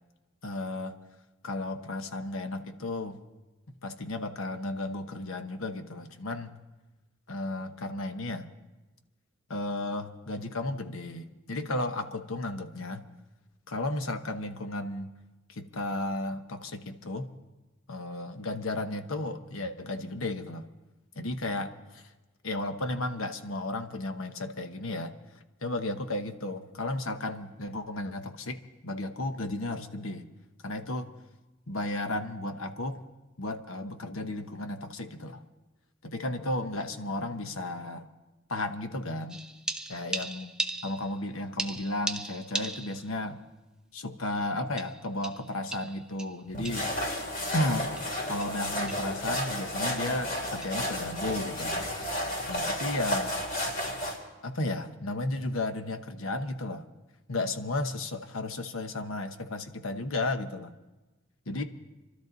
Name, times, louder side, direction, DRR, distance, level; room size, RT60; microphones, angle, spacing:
voice 1, 0.4-0.9 1.4-3.2 3.8-6.5 7.3-8.5 9.5-13.1 13.7-15.1 15.5-17.3 17.9-20.6 21.1-22.1 22.4-25.1 25.6-30.3 30.6-31.1 31.7-33.0 33.4-35.4 36.0-38.1 38.5-39.4 39.9-40.5 40.8-43.4 43.9-46.9 47.5-47.9 48.3-51.8 52.5-53.3 54.4-56.8 57.3-60.7 61.5-61.6, left 2 dB, 80° left, 8 dB, 1.1 m, -34 dB
sound 1, 39.3-41.3 41.6-43.2 43.5-43.6 44.8-47.0 47.5-47.6 48.0-48.1 48.4-48.6 48.9-49.1 49.4-49.6 50.6-50.8, right 2 dB, 5° right, 0.6 m, -37 dB
sound 2, 46.5-54.2, left 1 dB, 40° left, 3.2 m, -32 dB
26.5 x 12.5 x 4.0 m, 1.1 s
head